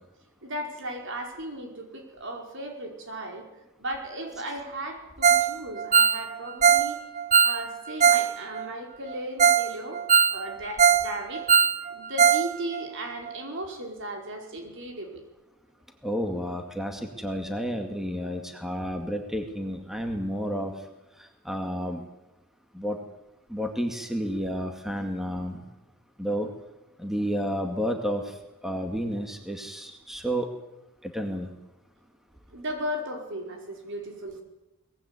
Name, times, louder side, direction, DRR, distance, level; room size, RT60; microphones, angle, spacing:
voice 1, 0.4-3.5 3.8-7.0 7.4-10.0 10.3-11.5 11.9-15.2 26.2-26.3 32.5-34.4, right 1 dB, 60° right, 3 dB, 5.1 m, -36 dB
Ringtone, 5.2-5.5 5.8-8.3 8.6-8.7 9.1-9.2 9.4-9.7 9.9-11.1 11.3-12.5 12.7-12.8 13.3-13.4, right 7 dB, 35° right, 1.2 m, -20 dB
voice 2, 16.0-20.7 21.4-22.0 22.7-23.0 23.5-25.6 26.2-26.5 27.0-28.3 28.6-30.5 31.0-31.5, equal, ahead, 4 dB, 2.2 m, -31 dB
23.0 x 20.0 x 9.7 m, 0.99 s
head